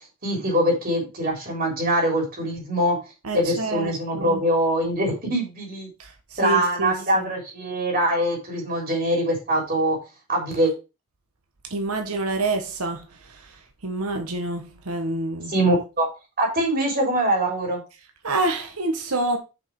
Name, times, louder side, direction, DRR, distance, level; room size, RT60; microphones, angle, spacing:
voice 1, 0.2-3.0 3.3-5.9 6.4-10.0 10.3-10.7 15.5-16.1 16.4-17.8, right 1 dB, 45° right, 3.5 m, -23 dB
voice 2, 3.2-4.4 6.0-7.3 11.7-13.5 13.8-15.5 18.2-19.4, right 2 dB, 90° right, 1.3 m, -27 dB
6.7 x 5.5 x 4.6 m
head